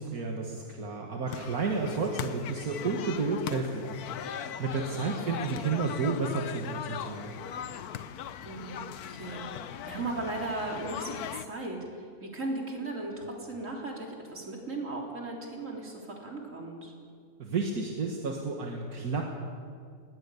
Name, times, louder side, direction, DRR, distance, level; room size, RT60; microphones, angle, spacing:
voice 1, 0.0-4.0 4.2-7.4 17.4-19.2, right 4 dB, 80° right, 0 dB, 2.1 m, -31 dB
sound 1, 1.3-11.5, left 9 dB, 85° left, 1.3 m, -39 dB
voice 2, 8.4-16.9, right 2 dB, 55° right, -1 dB, 4.0 m, -37 dB
20.0 x 17.5 x 8.5 m, 2.1 s
omnidirectional pair, 1.6 m